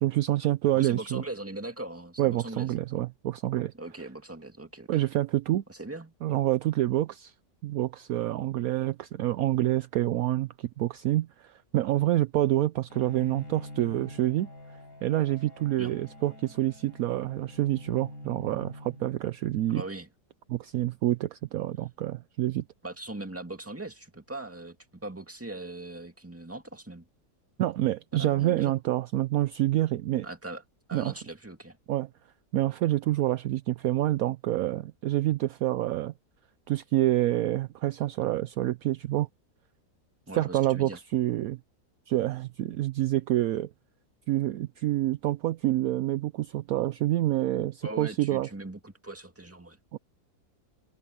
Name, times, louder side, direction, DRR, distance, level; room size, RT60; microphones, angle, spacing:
voice 1, 0.0-1.2 2.2-3.7 4.9-5.6 6.2-7.3 7.6-14.5 15.0-19.8 20.5-22.6 27.6-30.3 30.9-31.1 31.9-32.1 32.5-36.1 36.7-39.3 40.3-41.6 42.1-43.7 44.3-48.5 49.9-50.0, right 15 dB, 70° right, 1.0 m, -27 dB
voice 2, 0.7-2.7 3.7-4.9 5.7-6.1 15.8-16.0 19.7-20.1 22.8-27.0 28.1-28.7 30.2-30.6 30.9-31.8 40.3-41.0 47.8-49.8, right 2 dB, 10° right, 2.0 m, -40 dB
Bowed string instrument, 12.9-19.6, left 1 dB, 60° left, 7.9 m, -46 dB
omnidirectional pair, 1.7 m